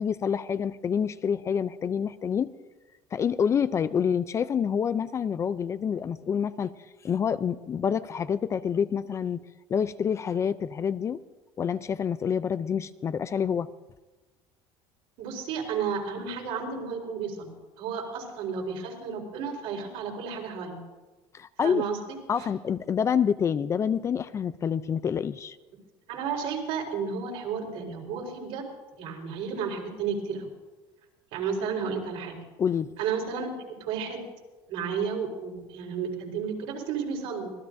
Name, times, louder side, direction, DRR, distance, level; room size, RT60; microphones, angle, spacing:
voice 1, 0.0-2.5 3.1-6.7 7.0-9.4 9.7-11.2 11.6-13.7 21.3-21.8 22.3-25.6 32.6-32.9, left 7 dB, 25° left, 14 dB, 0.4 m, -27 dB
voice 2, 15.2-20.8 21.6-22.2 26.1-28.7 29.0-30.5 31.3-32.4 33.0-34.2 34.7-37.5, right 6 dB, 70° right, 1 dB, 4.2 m, -32 dB
25.0 x 17.5 x 2.6 m, 1.2 s
cardioid pair, 145°, 11 cm